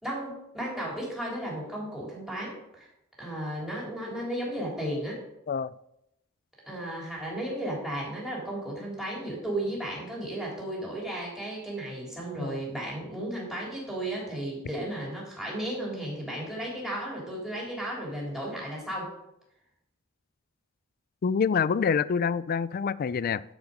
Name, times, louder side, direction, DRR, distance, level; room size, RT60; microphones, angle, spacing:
voice 1, 0.0-2.9 3.2-5.2 6.7-19.1, right 1 dB, ahead, -4 dB, 3.3 m, -34 dB
voice 2, 21.2-23.4, left 6 dB, 45° left, 18 dB, 0.3 m, -26 dB
12.0 x 5.1 x 5.1 m, 0.82 s
head